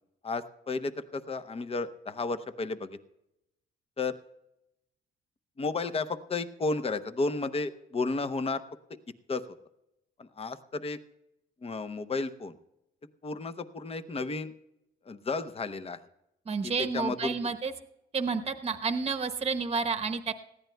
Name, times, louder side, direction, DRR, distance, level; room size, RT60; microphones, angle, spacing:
voice 1, 0.2-3.0 4.0-4.1 5.6-8.6 9.3-9.4 10.2-11.0 11.6-12.5 13.2-14.5 15.1-16.0 16.9-17.5, left 3 dB, 30° left, 11 dB, 0.8 m, -32 dB
voice 2, 16.5-17.7 18.1-20.3, right 5 dB, 30° right, 7 dB, 1.0 m, -30 dB
19.5 x 14.5 x 2.3 m, 0.89 s
cardioid pair, 90°, 20 cm